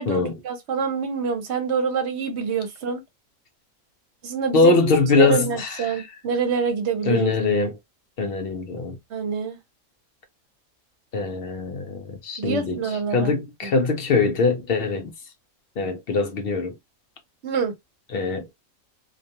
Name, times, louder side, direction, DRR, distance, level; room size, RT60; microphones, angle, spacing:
voice 1, 0.0-3.0 4.2-4.8 5.2-7.3 9.1-9.6 12.4-13.3 13.6-13.7 17.4-17.7, right 6 dB, 60° right, 0.9 m, -26 dB
voice 2, 4.5-6.1 7.0-7.7 8.2-9.0 11.1-15.1 15.8-16.7 18.1-18.5, left 4 dB, 60° left, 0.6 m, -22 dB
2.4 x 2.3 x 2.7 m
omnidirectional pair, 1.4 m